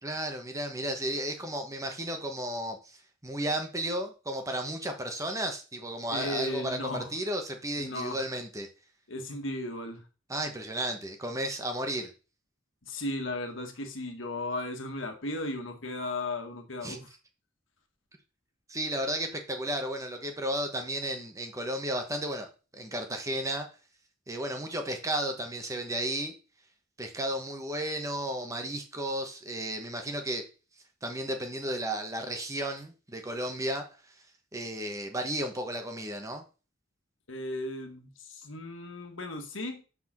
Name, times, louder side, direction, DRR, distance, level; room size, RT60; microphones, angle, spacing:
voice 1, 0.0-3.0 3.2-8.7 10.3-12.1 16.8-17.0 18.7-22.5 22.7-23.7 24.3-26.3 27.0-30.4 31.0-33.8 34.5-36.4, right 1 dB, 15° right, 5 dB, 1.1 m, -33 dB
voice 2, 6.1-7.1 7.7-8.2 9.1-10.0 12.8-17.1 37.3-39.8, left 1 dB, 70° left, 4 dB, 1.6 m, -36 dB
6.0 x 4.7 x 6.0 m, 0.34 s
head